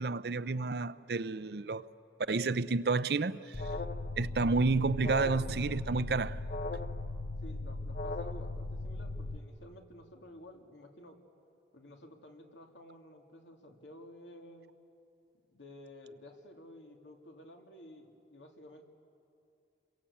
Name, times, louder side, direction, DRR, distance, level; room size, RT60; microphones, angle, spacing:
voice 1, 0.0-1.8 2.3-3.6 4.2-6.4, right 3 dB, 60° right, 0.6 m, -30 dB
Alarm, 3.5-9.4, left 2 dB, 50° left, 0.8 m, -38 dB
voice 2, 7.4-11.2 11.7-14.7 15.5-18.8, left 1 dB, 80° left, 2.5 m, -52 dB
27.5 x 22.5 x 8.6 m
head